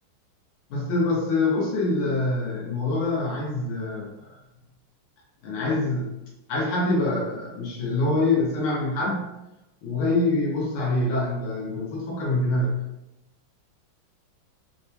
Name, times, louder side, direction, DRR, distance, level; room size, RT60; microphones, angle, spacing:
voice 1, 0.7-4.3 5.4-6.1 6.5-9.2 9.8-12.8, left 2 dB, 85° left, -4 dB, 1.7 m, -25 dB
4.0 x 2.2 x 2.7 m, 0.92 s
omnidirectional pair, 2.3 m